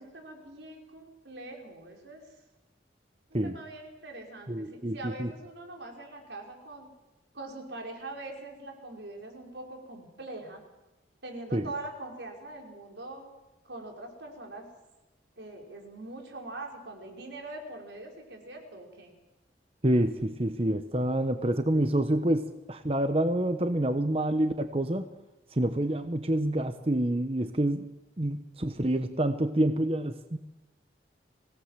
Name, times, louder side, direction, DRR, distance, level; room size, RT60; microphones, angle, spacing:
voice 1, 0.0-2.2 3.4-6.9 7.3-10.6 11.2-13.3 13.6-14.7 15.4-19.1, right 2 dB, 90° right, 2 dB, 5.6 m, -43 dB
voice 2, 4.5-5.3 11.5-11.6 19.8-25.0 25.6-27.9 28.2-30.4, right 1 dB, 35° right, 9 dB, 1.0 m, -27 dB
25.0 x 17.5 x 7.6 m, 1.1 s
head